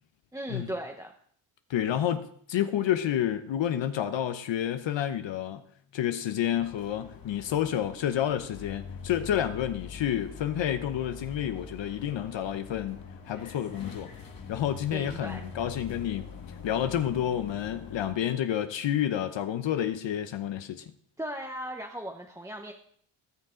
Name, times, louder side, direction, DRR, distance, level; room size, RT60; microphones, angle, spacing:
voice 1, 0.3-1.1 14.9-15.5 21.2-22.7, right 1 dB, 5° right, 0.9 m, -37 dB
voice 2, 1.7-5.6 5.9-13.0 13.3-14.1 14.5-16.3 16.6-20.8, left 10 dB, 60° left, 0.8 m, -29 dB
sound 1, 6.5-18.1, left 5 dB, 40° left, 1.8 m, -44 dB
17.5 x 6.5 x 3.8 m
cardioid pair, 105°, 50 cm